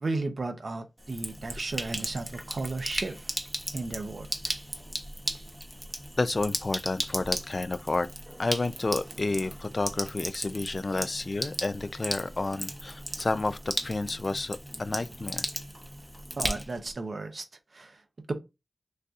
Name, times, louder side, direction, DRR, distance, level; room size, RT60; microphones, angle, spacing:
voice 1, 0.0-3.3 3.7-4.5 16.4-17.4 17.7-18.0 18.3-18.4, right 3 dB, 65° right, 0.7 m, -34 dB
Sink (filling or washing), 1.0-16.9, equal, 5° right, 0.8 m, -36 dB
voice 2, 6.2-8.1 8.4-15.4, left 3 dB, 50° left, 0.3 m, -30 dB
6.4 x 2.7 x 2.4 m
wide cardioid pair, 65°, 0 cm